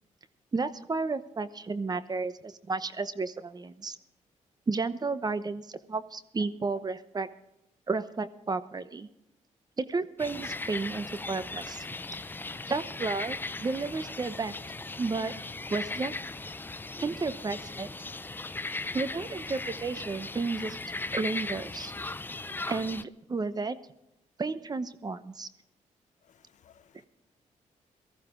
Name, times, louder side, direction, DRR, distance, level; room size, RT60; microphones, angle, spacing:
voice 1, 0.5-4.0 4.7-7.3 7.9-9.1 9.8-11.9 12.7-14.6 15.0-15.3 15.7-16.1 17.0-17.9 18.9-20.8 21.1-21.9 22.7-23.8 24.4-25.5, right 4 dB, 30° right, 14 dB, 0.9 m, -32 dB
sound 1, 10.2-23.0, left 2 dB, 15° left, 0.5 m, -38 dB
voice 2, 26.3-27.1, left 9 dB, 65° left, 12 dB, 1.0 m, -61 dB
18.5 x 14.5 x 3.8 m, 0.88 s
cardioid pair, 90°, 13 cm